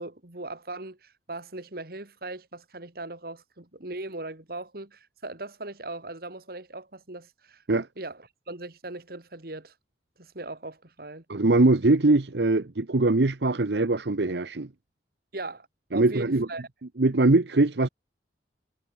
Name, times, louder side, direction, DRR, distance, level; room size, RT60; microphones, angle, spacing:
voice 1, 0.0-7.6 8.0-9.7 10.2-11.2 15.3-16.7, right 2 dB, 55° right, 2.5 m, -39 dB
voice 2, 11.3-14.7 15.9-16.5 17.0-17.9, right 2 dB, 75° right, 1.0 m, -22 dB
head